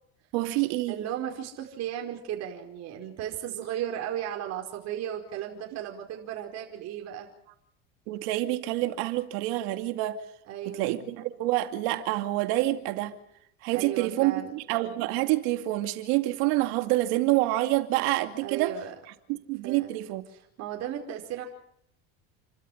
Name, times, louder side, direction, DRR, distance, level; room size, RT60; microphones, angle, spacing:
voice 1, 0.3-1.0 8.1-10.2 10.7-13.1 13.6-18.8 19.3-20.2, right 17 dB, 80° right, 2.5 m, -27 dB
voice 2, 0.9-7.3 10.5-11.0 13.7-14.5 18.4-18.9 19.6-20.0 20.3-21.4, right 10 dB, 60° right, 4.9 m, -35 dB
29.5 x 13.5 x 8.8 m
supercardioid pair, 105°, 31 cm